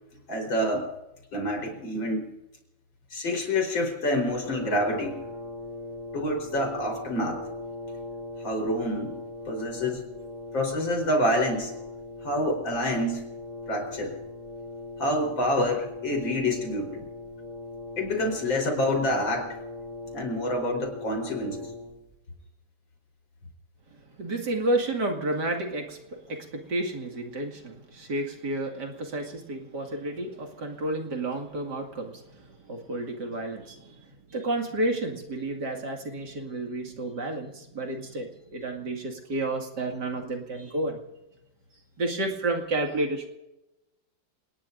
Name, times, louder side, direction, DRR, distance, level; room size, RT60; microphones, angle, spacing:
voice 1, 0.3-0.9 1.3-2.3 3.1-5.1 6.1-7.4 8.4-9.2 9.5-10.0 10.5-11.7 12.2-13.2 13.7-14.2 15.0-17.0 18.0-19.6 20.1-21.7, left 1 dB, 80° left, 2 dB, 5.0 m, -27 dB
Brass instrument, 4.3-22.1, left 2 dB, 90° right, 7.2 m, -40 dB
voice 2, 24.2-41.0 42.0-43.3, right 2 dB, 60° right, 2 dB, 2.8 m, -31 dB
27.5 x 19.5 x 2.6 m, 0.94 s
omnidirectional pair, 2.1 m